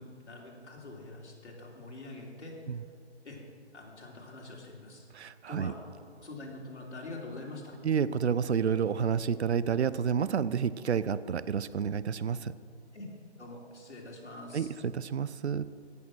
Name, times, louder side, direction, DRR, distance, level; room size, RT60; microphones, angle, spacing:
voice 1, 0.0-2.6 3.2-3.4 3.7-5.1 5.5-5.8 6.2-7.7 12.9-13.1 13.4-14.7, left 2 dB, 75° left, -2 dB, 3.6 m, -45 dB
voice 2, 5.1-5.7 7.8-12.5 14.5-15.6, right 7 dB, 70° right, 16 dB, 0.6 m, -29 dB
17.0 x 7.0 x 6.1 m, 2.2 s
figure-of-eight pair, 160°, 34 cm